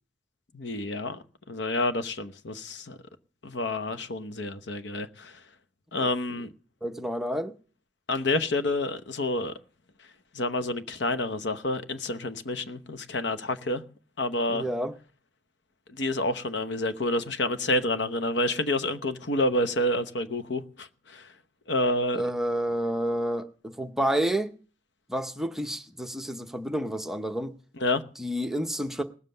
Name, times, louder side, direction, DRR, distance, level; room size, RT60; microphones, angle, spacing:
voice 1, 0.5-1.2 1.5-3.0 3.4-5.4 5.9-6.5 8.1-9.5 10.3-13.8 14.2-14.6 15.9-21.3 21.7-22.2 27.8-28.0, left 1 dB, 65° left, 0.9 m, -28 dB
voice 2, 6.8-7.5 14.5-14.9 22.1-24.5 25.1-27.6 28.2-29.0, right 1 dB, ahead, 0.6 m, -29 dB
18.5 x 7.4 x 6.7 m
head